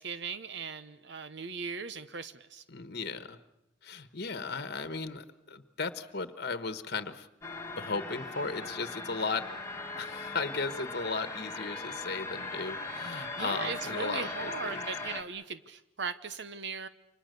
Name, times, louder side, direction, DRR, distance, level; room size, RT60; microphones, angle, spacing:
voice 1, 0.0-2.6 13.2-16.9, right 5 dB, 65° right, 12 dB, 0.9 m, -39 dB
voice 2, 2.7-3.4 3.8-7.3 7.8-9.5 10.0-14.8, left 4 dB, 55° left, 11 dB, 1.3 m, -36 dB
sound 1, 7.4-15.2, left 2 dB, 15° left, 2.1 m, -39 dB
29.5 x 25.0 x 6.8 m, 0.88 s
head